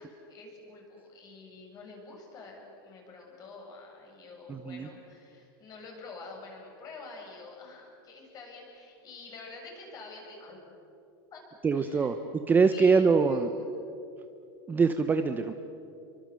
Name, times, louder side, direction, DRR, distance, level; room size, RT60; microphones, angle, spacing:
voice 1, 0.0-10.6 11.3-11.4 11.7-12.1 12.7-13.7, left 3 dB, 30° left, 0 dB, 7.6 m, -47 dB
voice 2, 4.5-4.9 11.6-12.2 12.5-13.5 14.7-15.5, right 5 dB, 15° right, 8 dB, 0.9 m, -23 dB
29.0 x 24.0 x 7.7 m, 2.7 s
supercardioid pair, 155°, 13 cm